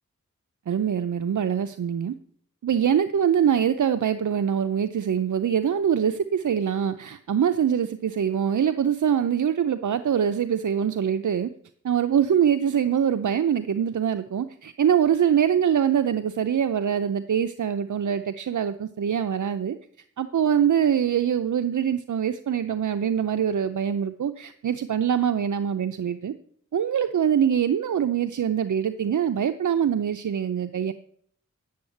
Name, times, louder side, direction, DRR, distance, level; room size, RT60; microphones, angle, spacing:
voice 1, 0.7-2.1 2.6-11.5 11.8-19.8 20.2-26.3 26.7-30.9, right 8 dB, 75° right, 10 dB, 0.6 m, -24 dB
9.6 x 7.1 x 8.4 m, 0.63 s
cardioid pair, 50°, 30 cm